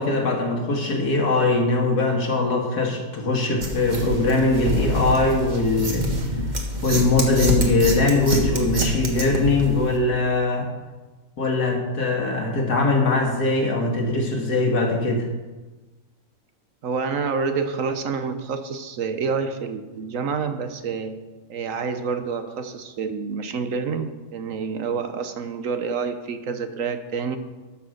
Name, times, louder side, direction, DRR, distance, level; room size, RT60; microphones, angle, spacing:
voice 1, 0.0-6.1 6.8-10.7 11.4-15.3, left 3 dB, 80° left, 1 dB, 2.3 m, -21 dB
sound 1, 3.6-10.0, equal, 30° right, 1.5 m, -26 dB
voice 2, 16.8-21.2 21.5-27.4, right 5 dB, 65° right, 9 dB, 1.1 m, -28 dB
12.5 x 6.0 x 6.5 m, 1.2 s
omnidirectional pair, 1.6 m